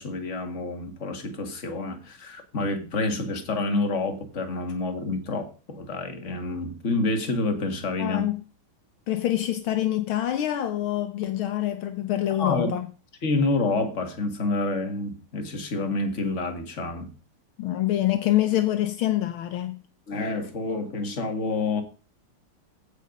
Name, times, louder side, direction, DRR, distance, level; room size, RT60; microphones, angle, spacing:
voice 1, 0.0-8.3 12.4-12.7 13.2-17.1 20.1-21.8, left 3 dB, 35° left, 2.0 m, -28 dB
voice 2, 8.0-8.4 9.1-12.9 17.6-19.8, left 13 dB, 75° left, 1.7 m, -26 dB
15.5 x 5.3 x 5.3 m
omnidirectional pair, 2.4 m